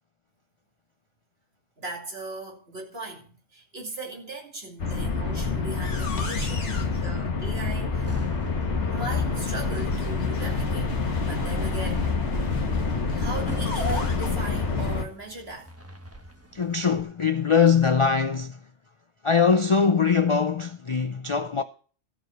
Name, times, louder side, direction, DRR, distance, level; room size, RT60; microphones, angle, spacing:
voice 1, 1.8-8.1 8.9-10.9 11.2-12.1 13.1-15.7, right 2 dB, 55° right, 3.0 m, -38 dB
sound 1, 4.8-15.1, left 4 dB, 65° left, 1.9 m, -27 dB
sound 2, 8.0-17.0, right 1 dB, 10° right, 1.1 m, -44 dB
voice 2, 16.5-18.6 19.2-21.6, left 6 dB, 45° left, 0.4 m, -22 dB
14.0 x 4.8 x 7.9 m
omnidirectional pair, 1.3 m